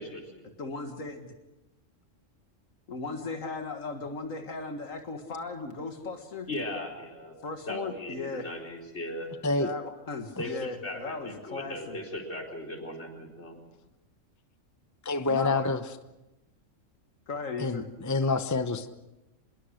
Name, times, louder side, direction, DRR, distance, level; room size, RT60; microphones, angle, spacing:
voice 1, 0.0-0.4 6.5-7.4 7.7-9.3 10.4-13.6, left 1 dB, 55° left, 1 dB, 4.6 m, -38 dB
voice 2, 0.6-1.3 2.9-6.5 7.4-8.5 9.6-12.0 15.3-15.7 17.3-17.9, left 3 dB, 85° left, 5 dB, 2.2 m, -37 dB
voice 3, 15.0-15.8 17.6-18.9, left 3 dB, 15° left, 10 dB, 0.8 m, -27 dB
25.5 x 21.5 x 6.5 m, 0.98 s
omnidirectional pair, 1.3 m